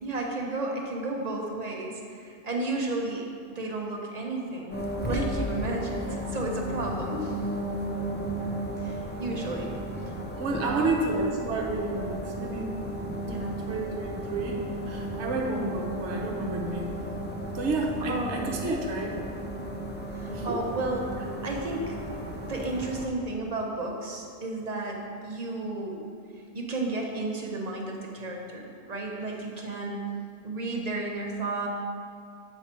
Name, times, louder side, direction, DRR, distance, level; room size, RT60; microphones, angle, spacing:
voice 1, 0.0-7.4 8.8-9.8 10.6-11.0 13.3-13.6 18.0-18.5 20.1-21.1 21.4-21.9 22.4-26.0 26.5-30.0 30.4-31.7, right 2 dB, 35° right, 0 dB, 0.8 m, -33 dB
sound 1, 4.7-23.1, equal, 15° left, 0.3 m, -34 dB
voice 2, 10.3-12.7 13.7-14.6 14.8-16.9 17.5-19.2 20.3-20.6, right 3 dB, 65° right, 0 dB, 1.2 m, -30 dB
7.8 x 4.7 x 4.3 m, 2.3 s
omnidirectional pair, 1.4 m